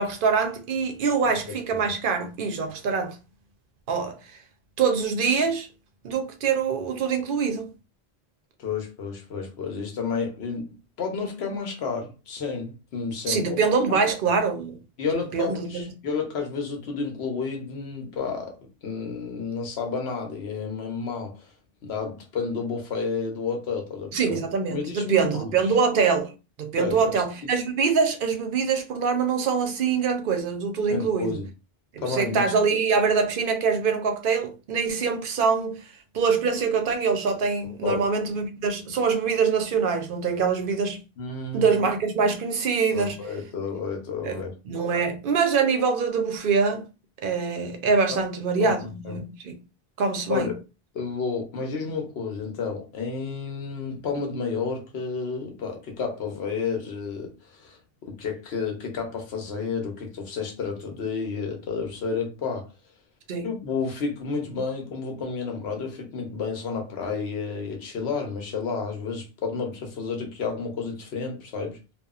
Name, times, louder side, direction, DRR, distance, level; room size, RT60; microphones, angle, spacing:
voice 1, 0.0-3.2 3.9-4.2 4.8-5.7 6.0-7.7 13.3-14.7 15.3-15.8 24.1-26.3 26.6-31.4 31.9-41.0 41.5-43.2 44.2-46.9 47.2-49.6 50.0-50.5 63.3-63.5, right 5 dB, 60° right, 0.7 m, -24 dB
voice 2, 1.5-1.9 8.6-13.6 13.9-14.3 15.0-21.5 21.8-24.4 24.7-25.5 26.7-27.5 30.9-31.5 32.0-32.5 32.7-32.8 37.8-38.0 41.2-41.8 42.9-44.6 48.6-49.2 50.3-50.6 50.9-62.7 63.4-71.8, left 5 dB, 85° left, 1.1 m, -31 dB
2.8 x 2.3 x 2.4 m
omnidirectional pair, 1.1 m